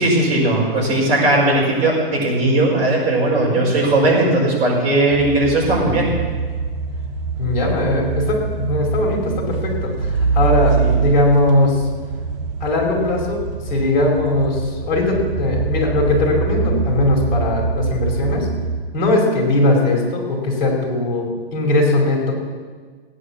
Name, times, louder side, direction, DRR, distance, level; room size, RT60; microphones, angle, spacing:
voice 1, 0.0-6.1 10.8-11.0, right 2 dB, 20° right, -6 dB, 5.1 m, -17 dB
sound 1, 5.1-18.8, right 4 dB, 45° right, 2.5 m, -24 dB
voice 2, 7.4-11.8 12.6-18.5 18.9-22.3, left 1 dB, 50° left, -2 dB, 5.4 m, -19 dB
16.0 x 9.8 x 7.4 m, 1.5 s
hypercardioid pair, 165°, 30 cm